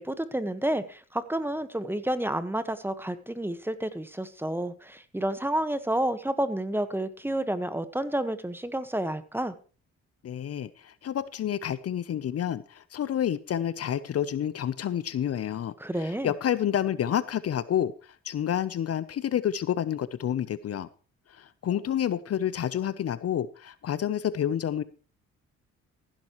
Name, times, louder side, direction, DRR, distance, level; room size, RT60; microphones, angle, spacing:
voice 1, 0.0-9.5 15.8-16.3, right 1 dB, 5° right, 12 dB, 1.3 m, -30 dB
voice 2, 10.2-20.9 21.3-24.8, left 10 dB, 55° left, 16 dB, 0.8 m, -29 dB
15.0 x 12.0 x 3.1 m, 0.36 s
cardioid pair, 90°, 30 cm